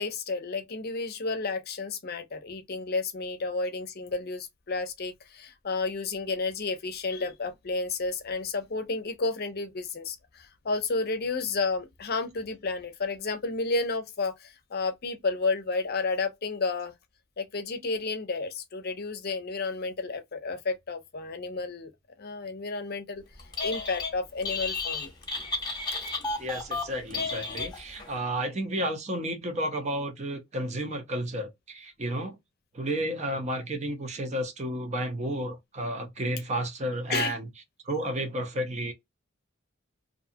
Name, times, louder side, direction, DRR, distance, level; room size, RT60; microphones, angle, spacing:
voice 1, 0.0-16.9 17.4-21.9 22.2-25.1 37.1-37.3, left 3 dB, 50° left, 0.6 m, -31 dB
Telephone, 23.4-24.1 24.4-28.1, left 3 dB, 20° left, 1.0 m, -33 dB
voice 2, 26.4-32.4 32.7-37.5 37.8-38.9, right 1 dB, 35° right, 0.8 m, -32 dB
2.6 x 2.3 x 2.7 m
head